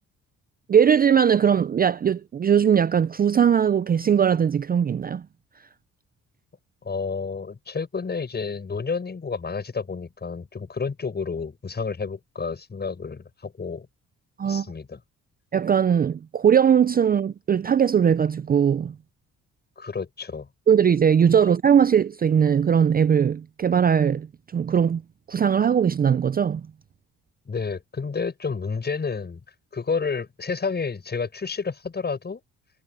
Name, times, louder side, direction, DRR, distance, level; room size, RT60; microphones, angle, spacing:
voice 1, 0.7-5.2 14.4-14.7 15.5-18.9 20.7-24.3 24.5-25.0 25.3-26.6, right 8 dB, 30° right, 0.5 m, -20 dB
voice 2, 6.8-13.9 14.4-15.0 19.8-20.5 27.5-29.4 29.7-32.4, left 5 dB, 35° left, 7.4 m, -30 dB
cardioid pair, 90°, 30 cm